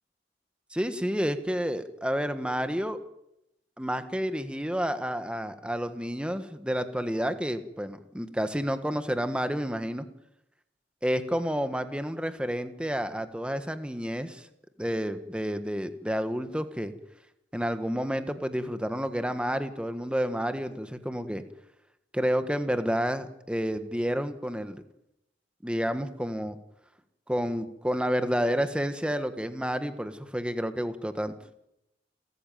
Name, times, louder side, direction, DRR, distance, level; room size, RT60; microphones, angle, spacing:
voice 1, 0.7-3.0 3.8-10.0 11.0-14.5 14.8-16.9 17.5-21.4 22.1-24.8 25.6-26.6 27.3-31.3, equal, 5° right, 9 dB, 1.5 m, -30 dB
29.5 x 14.0 x 9.2 m, 0.85 s
head